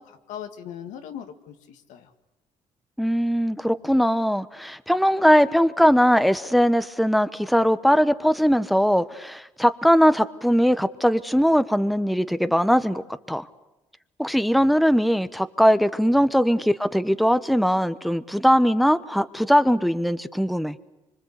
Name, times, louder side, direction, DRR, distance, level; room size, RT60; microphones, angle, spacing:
voice 1, 0.0-2.1, left 9 dB, 85° left, 6 dB, 2.1 m, -39 dB
voice 2, 3.0-13.0 13.3-13.5 14.2-20.7, equal, ahead, 13 dB, 1.0 m, -20 dB
25.5 x 24.5 x 8.2 m, 1.0 s
cardioid pair, 80°, 12 cm